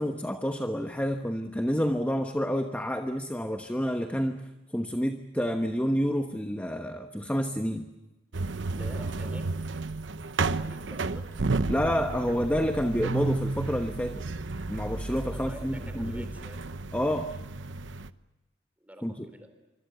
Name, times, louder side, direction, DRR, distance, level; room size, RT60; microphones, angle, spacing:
voice 1, 0.0-4.4 4.7-7.9 11.7-14.2 14.7-16.3 16.9-17.3 19.0-19.3, equal, 10° left, 5 dB, 1.1 m, -29 dB
sound 1, 8.3-18.1, right 3 dB, 75° right, 0.9 m, -32 dB
voice 2, 8.7-9.5 10.4-11.3 15.3-16.7 18.8-19.5, equal, 10° right, 7 dB, 4.1 m, -47 dB
25.5 x 25.0 x 7.9 m, 1.1 s
head